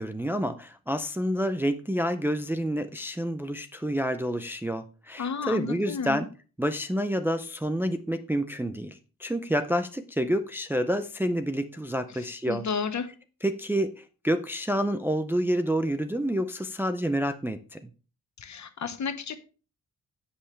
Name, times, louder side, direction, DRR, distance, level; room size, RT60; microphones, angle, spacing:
voice 1, 0.0-6.3 6.6-12.6 13.4-17.8, equal, 5° right, 0.5 m, -28 dB
voice 2, 5.2-6.2 12.5-13.1 18.4-19.4, left 5 dB, 55° left, 1.1 m, -32 dB
16.5 x 5.6 x 3.2 m
wide cardioid pair, 175°, 35 cm